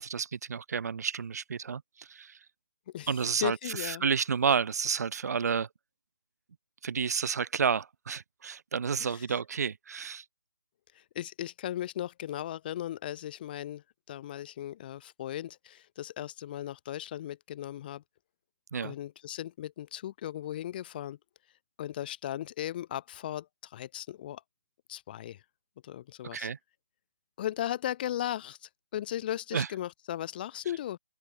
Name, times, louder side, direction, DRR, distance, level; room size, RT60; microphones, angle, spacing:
voice 1, 0.0-2.4 3.1-5.7 6.8-10.3 18.7-18.9 26.3-26.6 29.5-29.7, right 6 dB, 65° right, 0.5 m, -31 dB
voice 2, 3.4-4.0 9.0-9.2 10.9-18.0 18.8-21.2 21.8-24.4 24.9-25.4 25.8-26.5 27.4-31.0, left 12 dB, 30° left, 1.0 m, -37 dB
open air
figure-of-eight pair, 155°, 10 cm